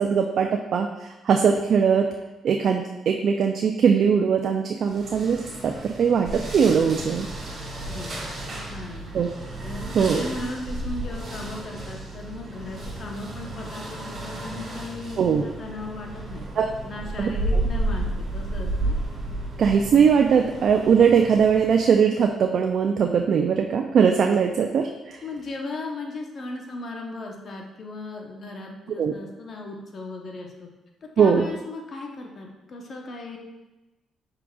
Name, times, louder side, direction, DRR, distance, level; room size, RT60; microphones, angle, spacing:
voice 1, 0.0-2.1 2.4-7.3 9.1-9.3 9.9-10.2 15.2-15.5 16.6-16.7 17.2-17.3 19.6-25.2 29.0-29.1 31.2-31.5, right 6 dB, 60° right, 4 dB, 0.3 m, -20 dB
sound 1, 4.8-22.0, right 1 dB, 40° right, 1.5 m, -32 dB
voice 2, 7.8-9.1 9.6-16.5 16.8-19.0 25.2-30.7 31.0-33.4, left 2 dB, 50° left, 1 dB, 0.8 m, -36 dB
5.9 x 3.8 x 2.3 m, 1.0 s
cardioid pair, 90°, 0 cm